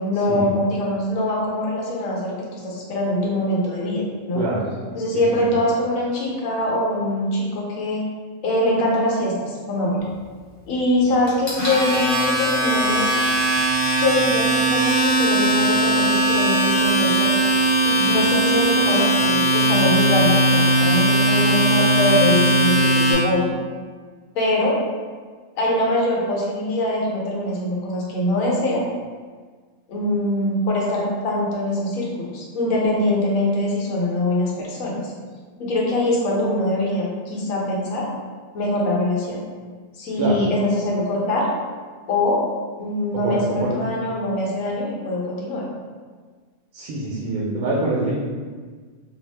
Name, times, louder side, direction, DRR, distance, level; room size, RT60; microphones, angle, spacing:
voice 1, 0.0-4.5 5.0-8.0 8.4-10.0 10.7-13.1 14.0-17.3 17.8-23.5 24.3-24.8 25.5-28.9 29.9-35.1 35.6-38.1 38.5-39.4 39.9-41.5 42.1-42.4 42.8-45.6, left 1 dB, 70° left, -4 dB, 1.0 m, -23 dB
voice 2, 4.3-4.7 5.4-5.5 40.2-40.4 43.1-43.7 46.7-48.1, right 2 dB, 85° right, -6 dB, 1.1 m, -25 dB
Domestic sounds home sounds, 11.3-23.1, right 1 dB, 35° left, 0.9 m, -19 dB
2.7 x 2.0 x 3.1 m, 1.5 s
omnidirectional pair, 1.5 m